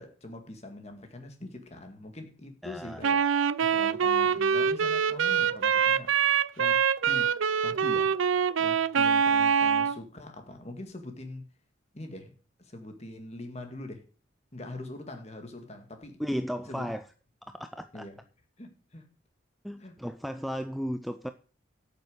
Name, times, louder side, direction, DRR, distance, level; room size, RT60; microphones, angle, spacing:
voice 1, 0.0-3.4 3.7-6.2 6.6-7.3 7.6-8.1 8.6-11.5 11.9-12.3 12.6-14.0 14.5-16.2 16.7-16.9 17.9-18.2 18.6-19.1 19.8-19.9, left 1 dB, 35° left, 2.0 m, -43 dB
voice 2, 2.6-3.0 16.2-17.0 17.5-18.1 19.6-21.3, equal, ahead, 0.4 m, -34 dB
Wind instrument woodwind instrument, 3.0-10.0, right 7 dB, 80° right, 0.5 m, -24 dB
8.8 x 7.0 x 8.0 m
head